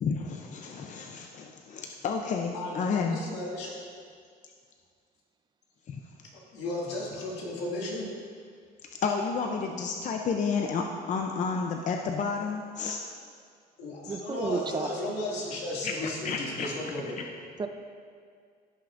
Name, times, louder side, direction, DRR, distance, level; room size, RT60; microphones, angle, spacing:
voice 1, 0.0-3.2 5.9-6.0 9.0-13.0 15.8-15.9 16.2-16.7, left 5 dB, 45° left, 3 dB, 0.6 m, -31 dB
voice 2, 2.5-3.8 6.3-8.1 13.8-17.4, left 2 dB, 85° left, -4 dB, 2.2 m, -35 dB
voice 3, 14.1-15.0 17.6-17.7, right 5 dB, 25° right, 7 dB, 0.5 m, -31 dB
16.0 x 5.7 x 2.5 m, 2.1 s
cardioid pair, 110°, 17 cm